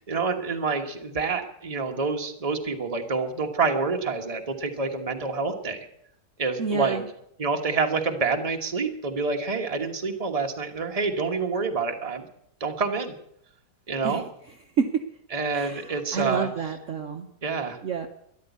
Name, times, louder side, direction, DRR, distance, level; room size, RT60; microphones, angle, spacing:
voice 1, 0.1-5.9 6.4-7.0 7.4-12.3 12.6-13.1 13.9-14.2 15.3-16.5 17.4-17.8, right 4 dB, 25° right, 4 dB, 1.3 m, -27 dB
voice 2, 6.6-7.0 14.0-14.2 14.8-15.0 15.5-17.3 17.8-18.1, right 6 dB, 55° right, 5 dB, 1.1 m, -28 dB
13.5 x 11.0 x 8.3 m, 0.73 s
omnidirectional pair, 1.9 m